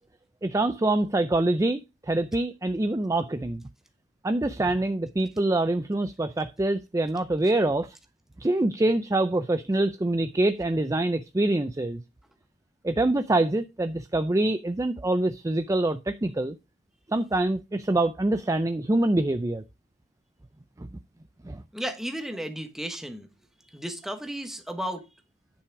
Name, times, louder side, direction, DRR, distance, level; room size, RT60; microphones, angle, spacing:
voice 1, 0.4-3.6 4.2-8.0 8.4-12.0 12.8-16.6 17.1-19.6 20.8-20.9 21.4-21.6, right 2 dB, 20° right, 0.4 m, -25 dB
voice 2, 21.7-23.3 23.7-25.1, equal, ahead, 1.3 m, -34 dB
10.0 x 5.8 x 4.7 m
head